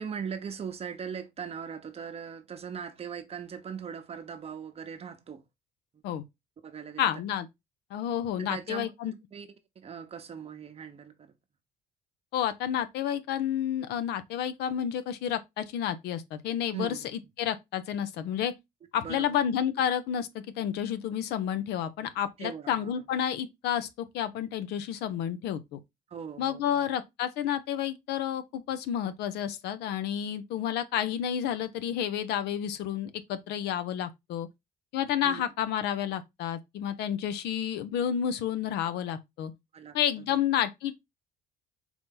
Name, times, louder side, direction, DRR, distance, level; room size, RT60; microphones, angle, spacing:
voice 1, 0.0-5.4 6.6-7.1 8.4-9.5 9.8-11.3 16.7-17.3 19.0-19.4 22.4-22.9 26.1-26.9 35.2-35.4 39.7-40.0 40.3-40.4, right 7 dB, 35° right, 0.8 m, -40 dB
voice 2, 7.0-7.5 7.9-9.1 12.3-18.5 18.9-25.8 26.4-34.5 34.9-39.5 39.9-41.0, left 10 dB, 80° left, 0.6 m, -30 dB
4.4 x 2.7 x 3.6 m
cardioid pair, 110°, 17 cm